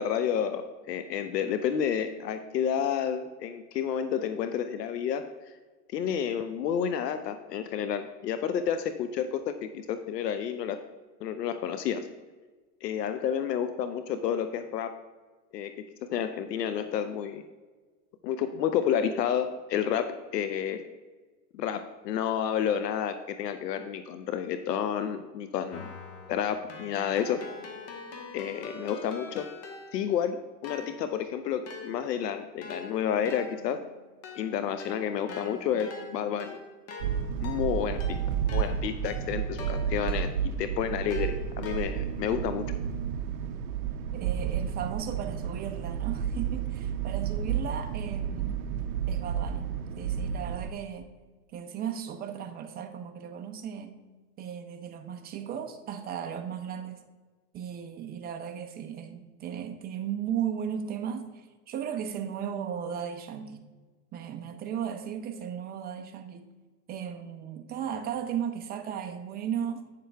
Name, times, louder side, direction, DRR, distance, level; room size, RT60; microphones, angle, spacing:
voice 1, 0.0-5.2 5.9-10.8 11.2-12.1 12.8-14.9 15.5-17.4 18.2-20.8 21.5-25.9 26.3-27.4 28.3-29.5 29.9-33.8 34.3-36.6 37.4-38.2 38.5-40.3 40.6-42.7, left 8 dB, 80° left, 9 dB, 0.7 m, -30 dB
Keyboard (musical), 25.7-30.2 30.6-40.6 41.1-42.3, left 3 dB, 30° left, 1.3 m, -44 dB
sound 1, 37.0-50.7, right 8 dB, 60° right, 0.7 m, -31 dB
voice 2, 44.1-48.7 49.1-51.1 51.5-54.0 54.4-57.0 57.5-63.6 64.1-66.5 66.9-69.8, right 8 dB, 20° right, 6 dB, 0.6 m, -36 dB
8.9 x 6.7 x 3.4 m, 1.3 s
hypercardioid pair, 125°, 48 cm